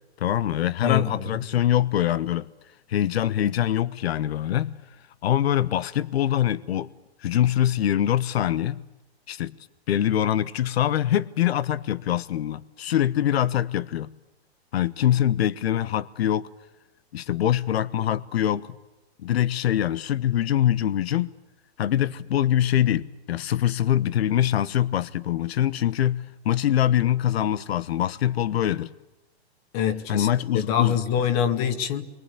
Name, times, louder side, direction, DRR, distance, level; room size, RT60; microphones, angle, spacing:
voice 1, 0.2-2.5 2.9-4.7 5.2-6.9 7.2-8.8 9.3-9.5 9.9-14.1 14.7-16.5 17.1-18.7 19.2-21.3 21.8-28.9 30.1-31.0, left 11 dB, 70° left, 1.2 m, -24 dB
voice 2, 0.8-1.4 29.7-30.3 30.5-32.1, left 8 dB, 35° left, 2.1 m, -25 dB
29.0 x 23.0 x 8.5 m
hypercardioid pair, 155°, 32 cm